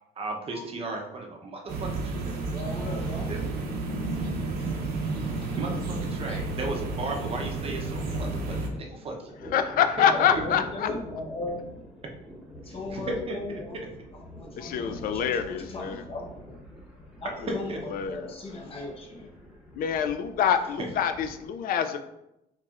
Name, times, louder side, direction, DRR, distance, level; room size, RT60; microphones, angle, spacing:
voice 1, 0.2-2.1 3.3-3.4 5.6-9.2 10.3-10.6 12.7-13.9 17.4-17.8 20.8-20.9, right 2 dB, 35° right, 1 dB, 0.7 m, -35 dB
sound 1, 1.7-8.7, right 3 dB, 70° right, 0.8 m, -31 dB
voice 2, 2.5-3.3 4.2-4.4 4.7-5.6 6.3-6.4 9.4-9.5 10.0-11.6 12.7-13.8 14.3-16.6 17.2-17.7 18.1-19.3, left 2 dB, 35° left, 1 dB, 0.8 m, -38 dB
Thunder, 8.7-21.5, equal, 5° right, 1.0 m, -46 dB
voice 3, 9.5-10.9 14.6-16.1 17.9-18.7 19.8-22.1, left 8 dB, 60° left, 9 dB, 0.4 m, -26 dB
4.4 x 3.0 x 2.4 m, 0.87 s
cardioid pair, 110°, 17 cm